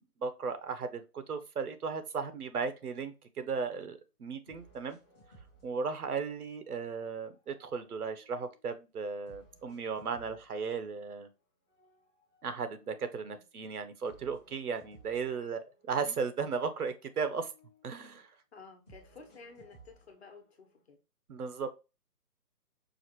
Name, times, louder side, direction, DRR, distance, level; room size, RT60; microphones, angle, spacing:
voice 1, 0.2-5.0 5.6-11.3 12.4-17.5 17.8-18.3 21.3-21.7, right 5 dB, 65° right, 0.8 m, -36 dB
sound 1, 4.5-6.5 6.9-8.7 9.3-11.2 11.7-13.5 14.1-16.2 16.5-18.2 18.9-20.8, right 2 dB, 10° left, 0.8 m, -62 dB
voice 2, 18.5-21.0, left 4 dB, 40° left, 1.1 m, -53 dB
4.9 x 2.5 x 3.0 m
hypercardioid pair, 160°, 48 cm